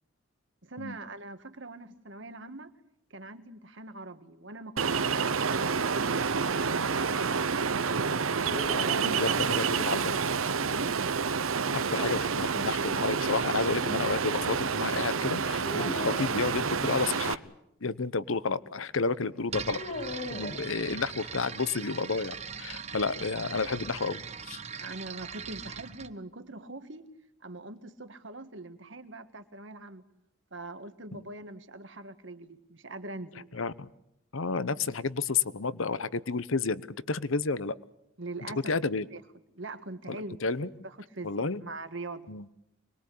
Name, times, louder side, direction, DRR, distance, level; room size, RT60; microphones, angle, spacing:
voice 1, 0.6-2.8 3.1-7.9 8.7-9.2 9.6-10.9 24.8-27.1 27.4-30.0 30.5-33.6 38.2-38.6 39.1-39.2 39.5-40.4 40.8-42.3, right 2 dB, 60° right, 10 dB, 1.7 m, -43 dB
Ocean, 4.8-17.3, right 5 dB, 85° right, 0.9 m, -29 dB
sound 1, 8.4-10.0 11.6-12.8 15.6-16.4 19.6-21.3, left 1 dB, 45° left, 3.2 m, -40 dB
voice 2, 9.0-10.1 11.7-17.4 17.8-19.8 20.3-24.6 31.1-31.2 33.5-33.9 34.3-36.8 37.1-37.7 38.7-39.1 40.1-40.2 40.4-40.7 41.2-41.6 42.3-42.5, left 4 dB, 75° left, 17 dB, 1.0 m, -31 dB
sound 2, 19.5-26.1, right 6 dB, 30° right, 0.9 m, -40 dB
25.5 x 21.5 x 8.6 m, 0.80 s
head